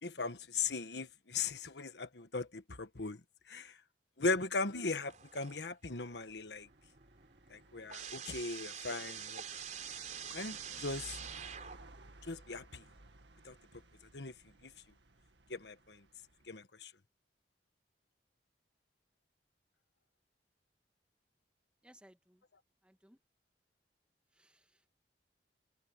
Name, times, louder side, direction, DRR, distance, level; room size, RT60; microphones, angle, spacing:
voice 1, 0.0-3.2 3.5-3.7 4.2-6.7 7.5-9.4 10.3-11.2 12.2-12.8 13.4-13.5 14.1-14.3 14.6-14.7 15.5-16.0 16.5-16.9, left 4 dB, 75° left, 1.4 m, -38 dB
sound 1, 5.1-5.9 6.3-12.1, right 8 dB, 45° right, 4.4 m, -46 dB
sound 2, 5.9-16.5, right 2 dB, 85° right, 2.0 m, -58 dB
voice 2, 21.8-22.4 22.8-23.2 24.3-25.0, right 1 dB, 5° right, 1.8 m, -63 dB
head